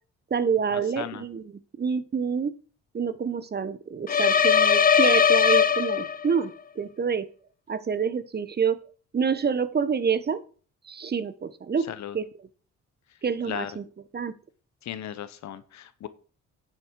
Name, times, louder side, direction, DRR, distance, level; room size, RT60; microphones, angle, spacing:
voice 1, 0.3-2.5 2.9-7.3 7.7-8.8 9.1-10.4 10.9-11.9 12.1-12.5 13.2-13.8 14.1-14.3, right 6 dB, 35° right, 14 dB, 1.1 m, -27 dB
sound 1, 4.1-6.4, left 7 dB, 30° left, 0.6 m, -20 dB
voice 2, 14.8-16.1, left 10 dB, 65° left, 13 dB, 1.0 m, -36 dB
9.7 x 7.5 x 4.7 m, 0.40 s
cardioid pair, 90°, 30 cm